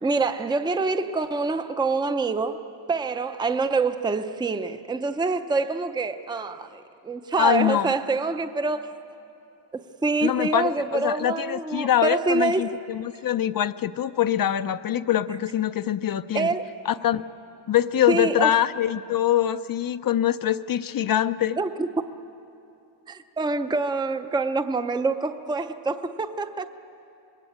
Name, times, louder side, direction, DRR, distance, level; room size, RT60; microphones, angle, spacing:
voice 1, 0.0-2.6 2.9-8.9 9.7-12.7 16.3-16.7 18.1-18.6 21.6-21.9 23.1-26.7, right 3 dB, 10° right, 0.5 m, -26 dB
voice 2, 7.4-7.9 10.2-16.5 16.9-17.3 17.7-21.6, left 11 dB, 50° left, 0.5 m, -24 dB
26.0 x 21.0 x 8.6 m
wide cardioid pair, 180°, 45 cm